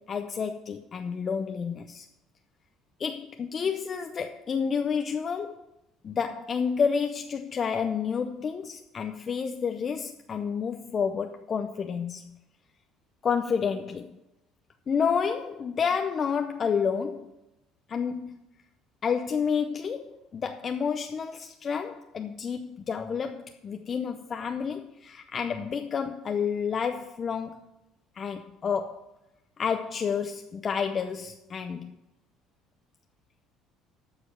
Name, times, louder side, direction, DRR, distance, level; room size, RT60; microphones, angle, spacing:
voice 1, 0.0-2.1 3.0-5.7 6.0-12.4 13.2-14.1 14.9-17.3 17.9-18.4 19.0-27.7 28.1-29.0 29.6-32.0, left 6 dB, 30° left, 0.6 m, -30 dB
13.5 x 5.0 x 7.1 m
cardioid pair, 135°, 0 cm